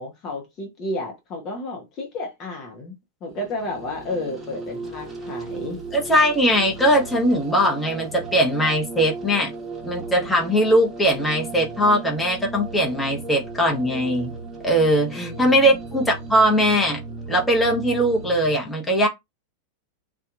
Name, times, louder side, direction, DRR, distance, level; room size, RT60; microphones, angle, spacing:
voice 1, 0.0-3.0 3.2-5.8 15.1-15.8, left 2 dB, 35° left, 0.9 m, -32 dB
sound 1, 3.3-18.5, right 4 dB, 10° right, 1.1 m, -36 dB
voice 2, 5.9-9.5 9.8-14.3 14.6-17.0 17.3-19.1, equal, 10° left, 1.0 m, -20 dB
2.7 x 2.3 x 2.5 m
figure-of-eight pair, 90°, 0 cm